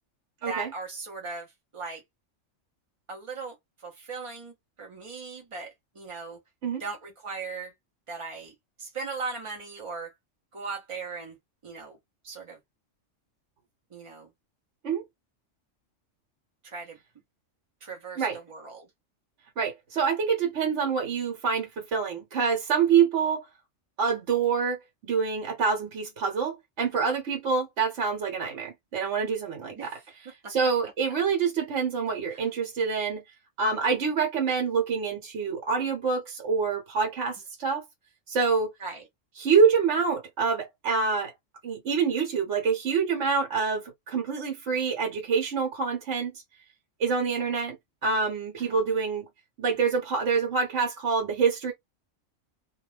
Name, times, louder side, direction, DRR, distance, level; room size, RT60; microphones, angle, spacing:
voice 1, 0.5-2.0 3.1-6.4 6.8-7.7 8.1-10.1 10.5-11.4 11.6-12.0 12.2-12.6 13.9-14.3 16.6-17.0 17.8-18.9 29.8-30.1 30.4-30.5 32.3-32.4 38.8-39.1 47.3-47.4 48.6-48.8, right 4 dB, 45° right, 0.4 m, -38 dB
voice 2, 19.6-23.5 24.0-29.9 30.5-33.2 33.6-37.8 38.3-38.7 39.4-41.3 41.6-46.4 47.0-47.8 48.0-49.3 49.6-51.7, right 5 dB, 65° right, 1.1 m, -26 dB
2.3 x 2.1 x 3.1 m
omnidirectional pair, 1.3 m